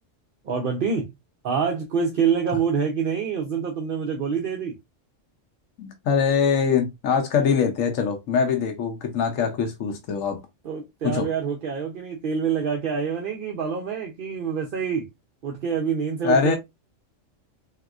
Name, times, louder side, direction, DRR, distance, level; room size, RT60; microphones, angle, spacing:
voice 1, 0.4-1.1 1.4-4.8 10.6-15.1 15.4-16.6, right 6 dB, 55° right, 0.7 m, -26 dB
voice 2, 5.8-10.4 11.0-11.3 16.2-16.6, left 6 dB, 90° left, 1.0 m, -23 dB
3.6 x 2.8 x 2.3 m
omnidirectional pair, 1.3 m